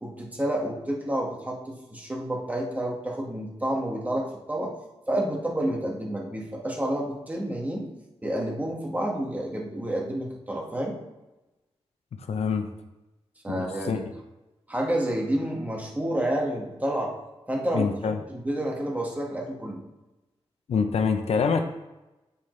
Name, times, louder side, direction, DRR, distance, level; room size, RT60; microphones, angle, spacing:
voice 1, 0.0-4.7 5.1-7.9 8.2-11.0 13.4-14.0 14.7-17.1 17.5-19.8, right 1 dB, 15° right, -1 dB, 1.7 m, -29 dB
voice 2, 12.3-12.7 13.5-14.0 17.7-18.2 20.7-21.6, left 5 dB, 85° left, 6 dB, 0.8 m, -25 dB
8.6 x 7.3 x 3.3 m, 1.0 s
wide cardioid pair, 145°, 10 cm